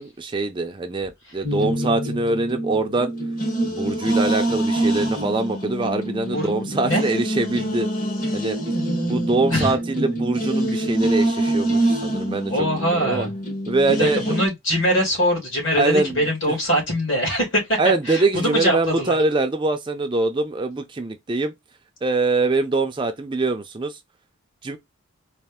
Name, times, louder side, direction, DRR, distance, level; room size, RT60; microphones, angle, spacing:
voice 1, 0.0-3.1 3.7-7.9 8.3-8.6 9.0-12.7 12.9-13.3 13.7-14.4 15.8-16.2 17.8-21.5 22.0-23.9 24.6-24.8, right 3 dB, 20° right, 0.4 m, -23 dB
sound 1, 1.4-14.4, right 1 dB, 40° left, 1.1 m, -25 dB
voice 2, 12.5-13.3 14.0-17.8 18.0-19.2, equal, 60° left, 2.6 m, -22 dB
4.2 x 2.4 x 3.5 m
head